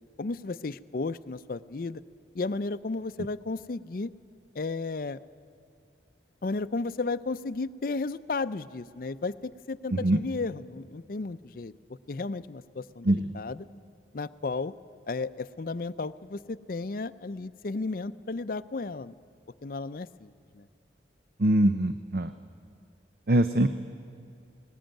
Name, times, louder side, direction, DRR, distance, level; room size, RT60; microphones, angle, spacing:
voice 1, 0.2-2.0 2.3-4.1 4.5-5.2 6.4-11.7 12.1-13.7 14.1-14.7 15.1-19.1 19.6-20.7, left 3 dB, 50° left, 13 dB, 0.5 m, -34 dB
voice 2, 21.4-22.3 23.3-23.7, right 1 dB, 55° right, 11 dB, 0.6 m, -22 dB
19.0 x 19.0 x 9.1 m, 2.6 s
head